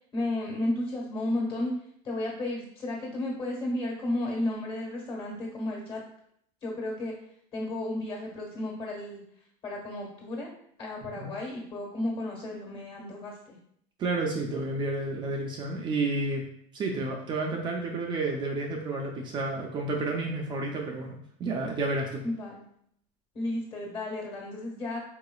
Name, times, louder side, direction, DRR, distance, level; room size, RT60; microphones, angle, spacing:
voice 1, 0.1-1.7 2.0-6.0 6.6-7.1 7.5-9.2 9.6-10.5 10.8-13.6 22.2-22.7 23.3-25.0, left 1 dB, 35° left, -1 dB, 1.6 m, -33 dB
voice 2, 14.0-16.5 16.7-22.2, right 2 dB, 30° right, 1 dB, 0.5 m, -31 dB
4.9 x 4.5 x 2.3 m, 0.68 s
cardioid pair, 160°, 16 cm